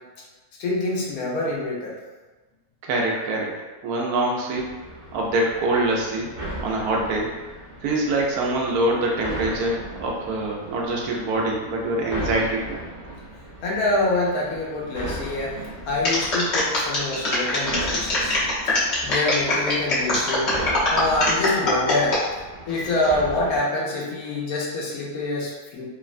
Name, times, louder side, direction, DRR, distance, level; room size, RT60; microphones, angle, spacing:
voice 1, 0.6-1.9 13.6-15.6 15.9-18.4 19.0-20.6 20.9-22.2 22.7-25.9, left 2 dB, 90° left, -4 dB, 1.2 m, -26 dB
voice 2, 2.8-3.5 3.8-4.8 5.1-6.3 6.6-7.3 7.8-12.8, right 2 dB, 85° right, -2 dB, 1.1 m, -24 dB
sound 1, 4.5-23.6, right 1 dB, 60° right, 0.4 m, -37 dB
sound 2, 16.0-22.2 22.7-23.1, left 1 dB, 55° left, 1.1 m, -23 dB
3.2 x 2.1 x 2.4 m, 1.2 s
omnidirectional pair, 1.5 m